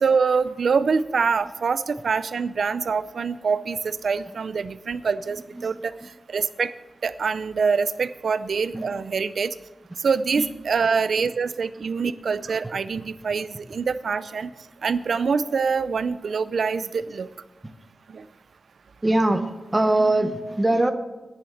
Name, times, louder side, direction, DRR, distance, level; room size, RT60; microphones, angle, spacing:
voice 1, 0.0-5.9 6.3-6.7 7.0-9.5 10.0-14.5 14.8-17.3 18.1-18.2, right 5 dB, 70° right, 14 dB, 0.5 m, -25 dB
voice 2, 19.0-20.9, right 1 dB, 20° right, 8 dB, 0.8 m, -21 dB
10.0 x 7.1 x 7.8 m, 1.1 s
wide cardioid pair, 95°, 0 cm